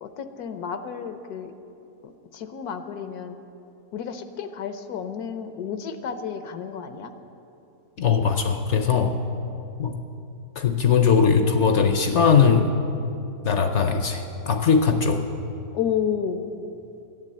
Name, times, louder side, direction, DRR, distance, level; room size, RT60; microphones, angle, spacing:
voice 1, 0.0-1.5 2.0-3.4 3.9-7.1 8.9-9.2 15.7-16.5, left 7 dB, 80° left, 9 dB, 1.2 m, -31 dB
voice 2, 8.0-9.2 9.8-10.0 10.6-12.7 13.4-15.3, left 6 dB, 60° left, 7 dB, 0.8 m, -20 dB
11.5 x 9.3 x 7.4 m, 2.9 s
omnidirectional pair, 1.6 m